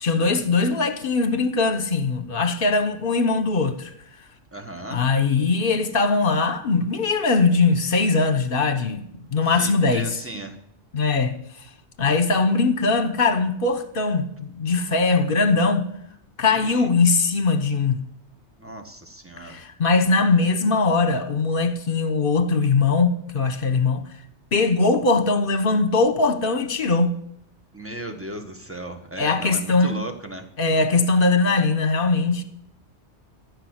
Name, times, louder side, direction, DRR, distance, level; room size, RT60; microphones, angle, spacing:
voice 1, 0.0-3.9 4.9-9.0 9.3-10.2 10.9-11.4 12.0-15.9 16.4-18.0 19.4-24.1 24.5-27.2 29.2-30.0 30.6-32.4, left 3 dB, 50° left, 1.3 m, -21 dB
voice 2, 4.5-5.0 9.5-10.6 16.5-16.9 18.6-19.6 27.7-30.5, right 1 dB, 10° right, 1.4 m, -36 dB
14.5 x 6.6 x 8.1 m
omnidirectional pair, 1.2 m